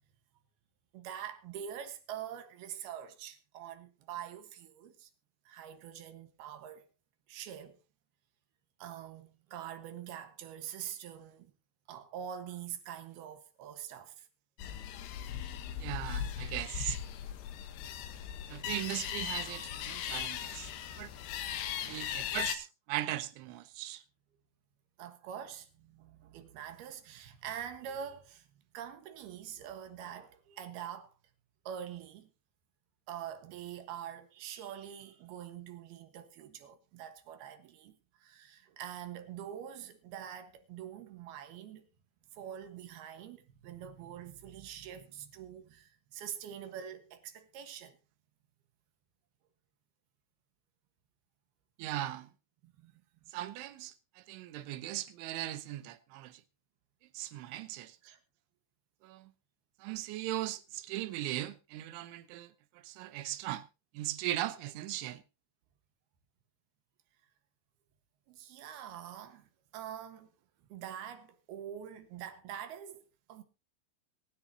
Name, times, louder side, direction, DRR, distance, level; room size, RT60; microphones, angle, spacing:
voice 1, 0.9-5.1 5.5-6.9 7.3-7.8 8.8-11.5 11.9-14.3 21.6-22.2 25.0-28.5 28.7-31.1 31.7-32.3 33.1-41.9 42.3-48.0 52.6-53.3 58.0-58.2 68.3-70.3 70.7-73.4, right 9 dB, 65° right, 3.0 m, -45 dB
sound 1, 14.6-22.6, left 10 dB, 70° left, 3.0 m, -38 dB
voice 2, 15.8-17.0 18.5-20.7 21.0-21.1 21.9-24.0 51.8-52.3 53.3-56.4 57.1-58.0 59.0-59.3 59.8-63.7 63.9-65.2, right 14 dB, 85° right, 3.3 m, -38 dB
23.0 x 9.6 x 2.8 m
omnidirectional pair, 5.3 m